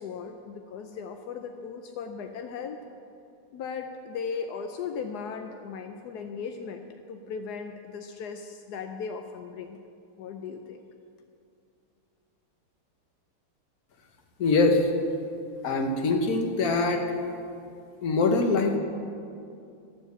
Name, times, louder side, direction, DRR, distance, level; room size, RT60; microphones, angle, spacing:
voice 1, 0.0-2.8 3.5-9.8 10.2-10.8, left 6 dB, 70° left, 5 dB, 0.9 m, -37 dB
voice 2, 14.4-14.9 15.6-17.0 18.0-18.8, left 3 dB, 50° left, 4 dB, 1.4 m, -23 dB
13.5 x 7.2 x 8.1 m, 2.6 s
omnidirectional pair, 2.3 m